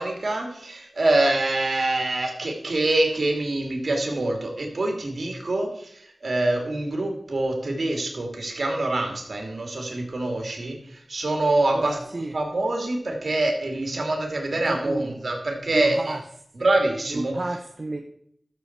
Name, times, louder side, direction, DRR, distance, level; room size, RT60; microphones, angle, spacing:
voice 1, 0.0-5.7 6.2-12.0 12.3-16.0 16.6-17.3, right 2 dB, 75° right, 2 dB, 2.8 m, -25 dB
voice 2, 11.7-12.3 14.5-15.3 15.7-16.2 17.1-18.0, right 2 dB, 55° right, 5 dB, 1.0 m, -32 dB
13.0 x 7.1 x 4.7 m, 0.68 s
cardioid pair, 45°, 0 cm